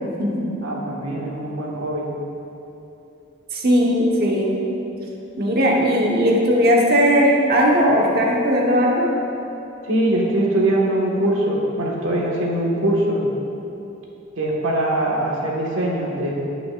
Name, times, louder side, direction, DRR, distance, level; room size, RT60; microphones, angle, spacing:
voice 1, 0.0-0.5 3.5-4.6 5.4-9.1, equal, 50° right, -2 dB, 1.1 m, -18 dB
voice 2, 0.6-2.1 9.8-13.2 14.4-16.3, right 1 dB, 75° right, -3 dB, 1.6 m, -22 dB
16.5 x 6.0 x 2.5 m, 2.9 s
head